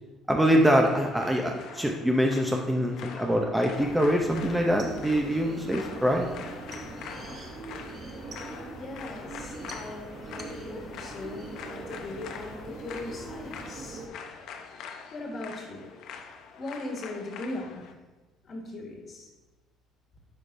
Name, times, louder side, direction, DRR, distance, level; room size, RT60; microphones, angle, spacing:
voice 1, 0.3-6.3, equal, 5° right, 1 dB, 0.6 m, -24 dB
sound 1, 0.8-17.9, left 6 dB, 70° left, 0.6 m, -44 dB
sound 2, 3.7-14.1, right 3 dB, 35° right, 0.9 m, -42 dB
voice 2, 8.8-14.1 15.1-15.9 16.5-17.9 18.4-19.3, left 2 dB, 40° left, 1 dB, 1.4 m, -39 dB
9.5 x 4.9 x 2.6 m, 1.2 s
cardioid pair, 115°, 0 cm